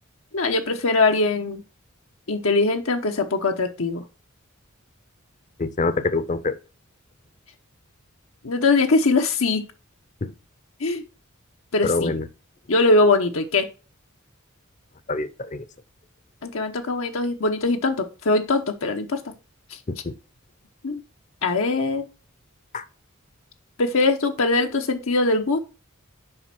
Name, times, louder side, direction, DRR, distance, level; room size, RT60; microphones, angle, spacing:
voice 1, 0.3-1.6 2.3-4.0 8.4-9.7 10.8-11.0 11.7-12.1 12.7-13.7 16.4-19.3 19.7-19.8 20.8-21.0 21.4-22.1 23.8-25.6, left 3 dB, 75° left, 1.0 m, -21 dB
voice 2, 5.6-6.6 10.2-10.3 11.8-12.2 15.1-15.6 19.9-20.1 22.7-22.8, left 3 dB, 35° left, 0.7 m, -25 dB
7.8 x 5.2 x 5.9 m
head